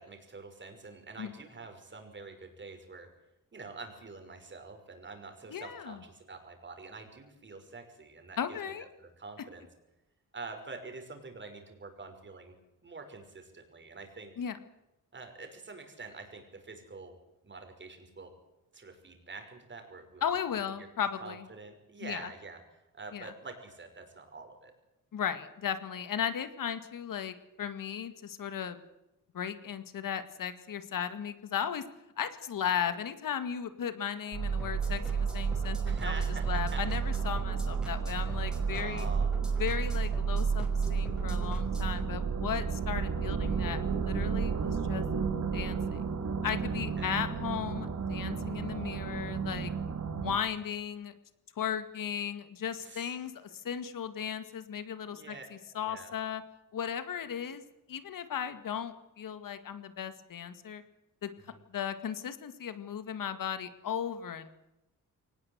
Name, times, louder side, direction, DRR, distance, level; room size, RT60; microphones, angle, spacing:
voice 1, 0.0-3.1 3.5-9.7 10.3-12.5 12.8-14.3 15.1-17.1 17.4-18.3 18.7-20.2 21.2-22.6 22.9-24.7 35.9-36.8 38.3-39.9 47.0-47.2 52.8-53.3 55.1-55.5 55.8-56.1 61.5-61.6, right 3 dB, 35° right, 5 dB, 5.8 m, -46 dB
voice 2, 5.5-6.0 8.4-8.9 14.4-14.6 20.2-21.5 22.0-22.3 23.1-23.3 25.1-28.8 29.3-31.8 32.2-39.1 39.6-45.0 45.5-46.0 46.4-49.7 50.2-51.1 51.6-56.4 56.7-60.8 61.2-61.3 61.7-64.6, left 8 dB, 70° left, 11 dB, 2.2 m, -36 dB
sound 1, 34.3-50.4, right 6 dB, 55° right, 3.1 m, -32 dB
sound 2, 34.6-42.0, right 2 dB, ahead, 5.6 m, -40 dB
23.5 x 19.5 x 8.2 m, 0.93 s
wide cardioid pair, 145°, 34 cm